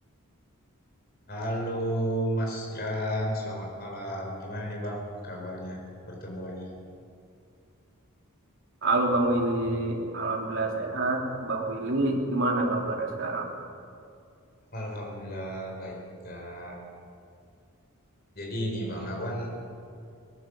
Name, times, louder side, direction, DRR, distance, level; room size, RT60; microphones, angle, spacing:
voice 1, 1.3-6.8 14.7-16.0 16.2-16.8 18.3-19.5, equal, 45° left, 0 dB, 4.8 m, -33 dB
voice 2, 8.8-13.5, right 2 dB, 55° right, 0 dB, 3.6 m, -27 dB
19.5 x 19.0 x 7.9 m, 2.5 s
head